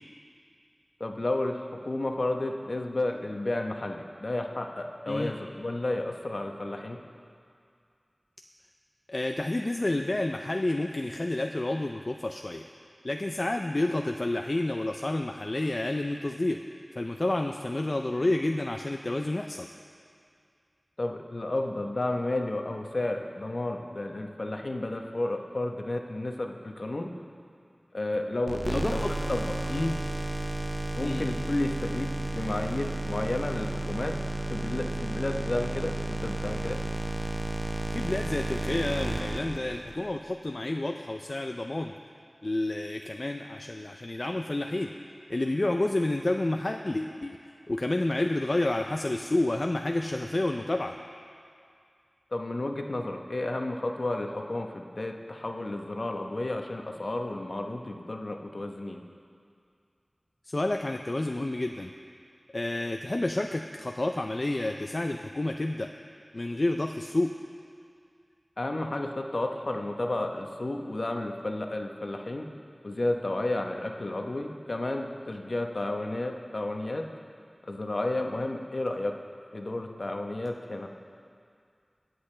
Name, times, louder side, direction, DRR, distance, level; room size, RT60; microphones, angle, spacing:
voice 1, 1.0-1.6 1.9-7.0 21.0-27.1 27.9-29.5 30.9-34.1 34.5-36.8 52.3-59.0 68.6-72.5 72.8-77.0 77.6-79.1 79.5-80.9, left 2 dB, 65° left, 3 dB, 0.9 m, -32 dB
voice 2, 9.1-12.6 13.0-16.6 17.0-19.7 28.7-29.1 29.7-30.0 31.0-31.2 37.9-41.9 42.4-44.9 45.3-47.4 47.7-51.0 60.5-61.9 62.5-65.9 66.3-67.4, left 2 dB, 50° left, 4 dB, 0.4 m, -29 dB
sound 1, 28.5-40.1, right 1 dB, 35° right, 0.6 m, -32 dB
23.0 x 8.0 x 3.3 m, 2.3 s
wide cardioid pair, 55°, 0 cm